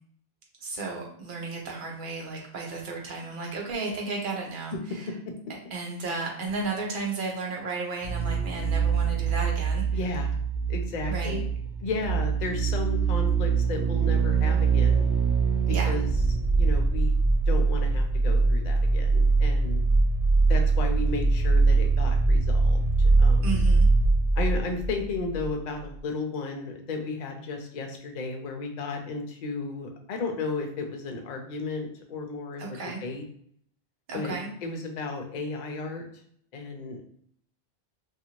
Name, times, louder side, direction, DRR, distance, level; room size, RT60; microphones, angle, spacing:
voice 1, 0.6-5.1 5.7-9.8 11.1-11.4 15.7-15.9 23.4-23.9 32.6-33.0 34.1-34.5, right 3 dB, 55° right, -1 dB, 0.8 m, -33 dB
sound 1, 8.0-25.6 25.8-25.9, right 4 dB, 85° right, 0.9 m, -23 dB
voice 2, 9.9-10.3 10.7-11.5 11.8-15.1 15.8-16.1 16.5-17.2 17.5-19.8 20.5-23.6 24.4-33.2 34.1-36.0 36.5-37.0, left 3 dB, 55° left, 3 dB, 0.6 m, -34 dB
2.5 x 2.4 x 2.9 m, 0.63 s
omnidirectional pair, 1.1 m